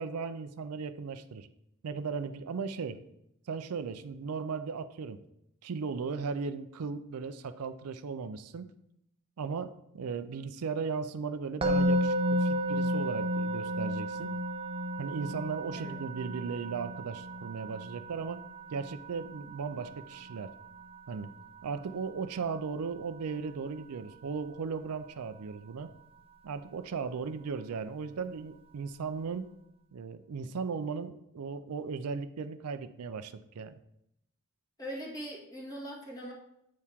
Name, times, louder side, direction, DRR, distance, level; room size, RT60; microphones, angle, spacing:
voice 1, 0.0-1.5 1.8-3.0 3.5-5.2 5.6-8.6 9.4-14.3 15.0-18.4 18.7-20.5 21.1-21.3 21.6-25.9 26.4-29.5 29.9-33.7, right 5 dB, 80° right, 10 dB, 0.4 m, -37 dB
Musical instrument, 11.6-22.7, equal, 25° right, 0.6 m, -33 dB
voice 2, 34.8-36.3, equal, 15° left, -4 dB, 1.9 m, -41 dB
8.4 x 4.6 x 3.5 m, 0.78 s
head